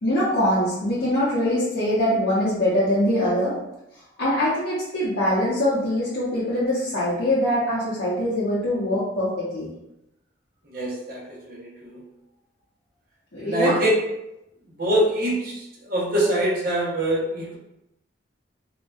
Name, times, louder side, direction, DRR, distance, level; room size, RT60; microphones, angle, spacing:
voice 1, 0.0-3.6 4.2-9.7 13.3-13.8, left 1 dB, 65° left, -10 dB, 0.7 m, -23 dB
voice 2, 10.7-11.2 13.4-13.9 14.8-15.4 15.9-17.6, right 1 dB, 50° right, -4 dB, 0.7 m, -23 dB
2.5 x 2.1 x 2.3 m, 0.87 s
head